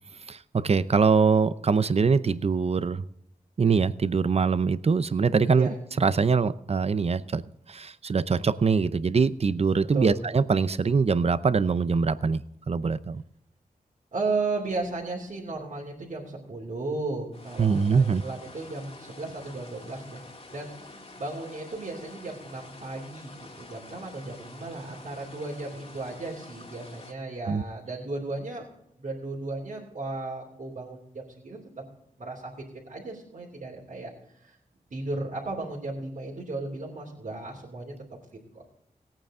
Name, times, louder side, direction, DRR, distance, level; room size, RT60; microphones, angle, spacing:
voice 1, 0.3-3.1 3.6-5.7 6.0-7.4 7.7-13.2 17.6-18.2 27.5-27.6, right 5 dB, 45° right, 0.6 m, -23 dB
voice 2, 14.1-20.2 20.5-28.7 29.0-31.6 32.2-32.5 32.9-34.1 34.4-34.6 34.9-37.9 38.5-38.6, right 3 dB, 60° right, 3.0 m, -35 dB
sound 1, 17.3-27.1, left 2 dB, 45° left, 2.2 m, -48 dB
17.5 x 8.9 x 3.8 m
wide cardioid pair, 70°, 15 cm